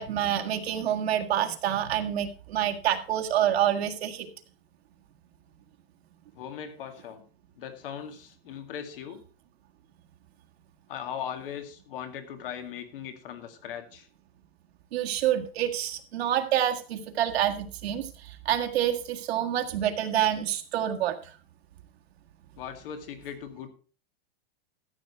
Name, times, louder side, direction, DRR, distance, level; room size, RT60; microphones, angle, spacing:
voice 1, 0.0-4.3 14.9-21.2, right 11 dB, 80° right, 4 dB, 1.8 m, -27 dB
voice 2, 6.3-7.2 7.6-9.2 10.9-14.1 22.6-23.7, left 8 dB, 60° left, 8 dB, 2.2 m, -39 dB
13.5 x 7.9 x 4.3 m, 0.38 s
supercardioid pair, 175°, 31 cm